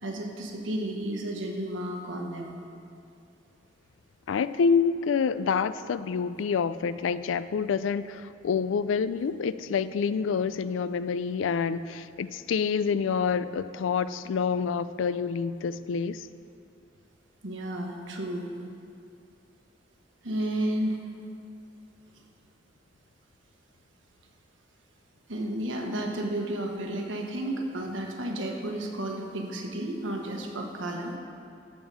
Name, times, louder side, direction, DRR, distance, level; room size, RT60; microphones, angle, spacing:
voice 1, 0.0-2.5 17.4-18.5 20.2-21.0 25.3-31.2, right 1 dB, 85° right, 2 dB, 1.3 m, -32 dB
voice 2, 4.3-16.3, left 6 dB, 90° left, 15 dB, 0.4 m, -27 dB
12.0 x 7.3 x 4.9 m, 2.5 s
head